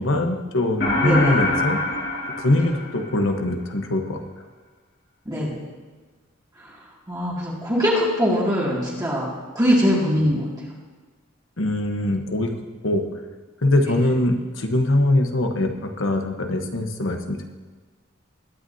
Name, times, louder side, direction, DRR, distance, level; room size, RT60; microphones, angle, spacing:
voice 1, 0.0-1.8 2.4-4.4 11.6-12.5 12.8-13.1 13.6-17.4, left 1 dB, 80° left, 4 dB, 1.1 m, -22 dB
sound 1, 0.8-3.4, left 2 dB, 60° left, 2.4 m, -25 dB
voice 2, 1.0-1.4 5.3-5.6 6.6-6.7 7.1-9.3 9.5-10.5, equal, 20° right, -6 dB, 2.2 m, -22 dB
21.0 x 9.2 x 2.8 m, 1.4 s
head